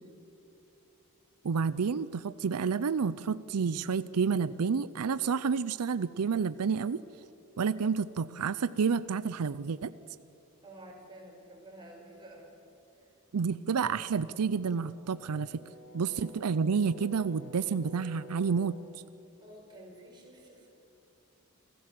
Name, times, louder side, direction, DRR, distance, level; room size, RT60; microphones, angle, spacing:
voice 1, 1.4-7.0 7.6-9.9 13.3-15.6 15.9-18.7, right 5 dB, 90° right, 16 dB, 0.5 m, -29 dB
voice 2, 10.6-12.6 12.9-13.1 19.4-20.8, right 1 dB, 20° right, -1 dB, 5.3 m, -51 dB
Brass instrument, 14.7-18.9, equal, 30° left, 4.6 m, -51 dB
27.5 x 15.5 x 7.6 m, 2.9 s
head